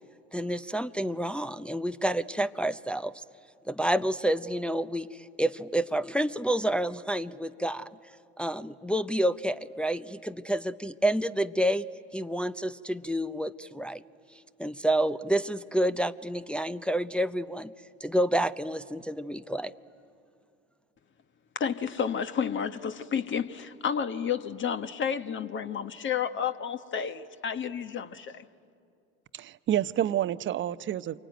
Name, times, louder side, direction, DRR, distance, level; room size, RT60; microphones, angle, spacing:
voice 1, 0.3-3.1 3.7-5.1 5.4-7.9 8.4-11.9 12.1-14.0 14.6-17.7 18.0-19.7, right 1 dB, 5° left, 0.6 m, -29 dB
voice 2, 21.5-28.4, left 7 dB, 35° left, 1.2 m, -31 dB
voice 3, 29.3-31.2, right 11 dB, 35° right, 0.8 m, -29 dB
27.5 x 24.0 x 9.1 m
hypercardioid pair, 75°, 33 cm